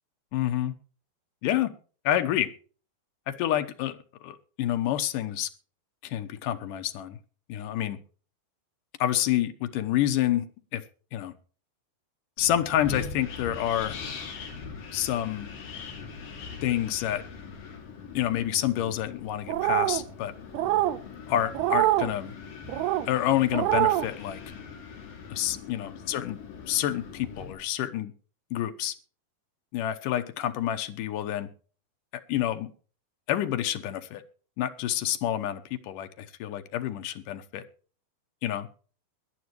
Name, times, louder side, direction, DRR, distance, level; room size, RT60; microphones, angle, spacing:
voice 1, 0.3-0.8 1.4-1.7 2.1-2.5 3.3-5.5 6.0-7.2 7.5-8.0 9.0-10.5 10.7-10.8 11.1-11.3 12.4-14.0 14.9-15.5 16.6-17.2 18.1-20.3 21.3-22.4 23.1-24.4 25.3-26.4 26.7-28.1 28.5-29.0 29.7-31.5 32.3-32.7 33.3-34.2 34.6-37.6 38.4-38.7, left 12 dB, 75° left, 9 dB, 2.0 m, -28 dB
Wind, 12.4-27.5, left 5 dB, 55° left, 4.0 m, -42 dB
sound 1, 19.5-20.0 20.5-21.0 21.5-22.1 22.7-23.1 23.5-24.1, right 15 dB, 75° right, 2.7 m, -24 dB
21.5 x 10.5 x 3.1 m, 0.39 s
omnidirectional pair, 4.9 m